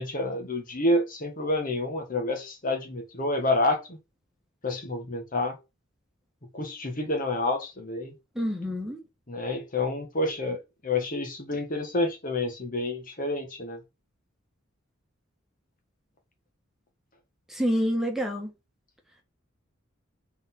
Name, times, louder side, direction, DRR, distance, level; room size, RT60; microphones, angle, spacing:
voice 1, 0.0-4.0 4.6-5.6 6.5-8.1 9.3-10.6 10.8-13.8, left 2 dB, 40° left, 1.6 m, -28 dB
voice 2, 8.4-9.0 17.5-18.5, equal, ahead, 1.7 m, -27 dB
5.2 x 4.1 x 5.4 m
head